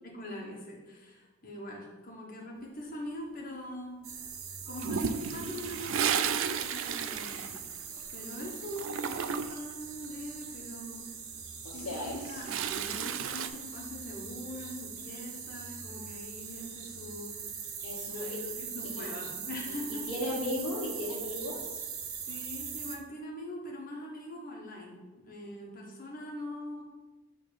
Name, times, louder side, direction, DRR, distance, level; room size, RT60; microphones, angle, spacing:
voice 1, 0.0-4.0 4.7-7.6 8.1-11.0 11.6-17.4 18.1-20.3 22.3-26.8, left 1 dB, 40° left, -2 dB, 1.4 m, -42 dB
sound 1, 4.0-23.0, right 6 dB, 75° right, 0.8 m, -42 dB
Toilet flush, 4.8-8.3 8.5-9.7 11.8-13.5, right 7 dB, 60° right, 0.3 m, -33 dB
voice 2, 11.6-12.4 17.8-18.4 18.8-19.1 19.9-21.7, left 1 dB, 90° left, -2 dB, 1.6 m, -36 dB
6.5 x 3.7 x 5.3 m, 1.2 s
head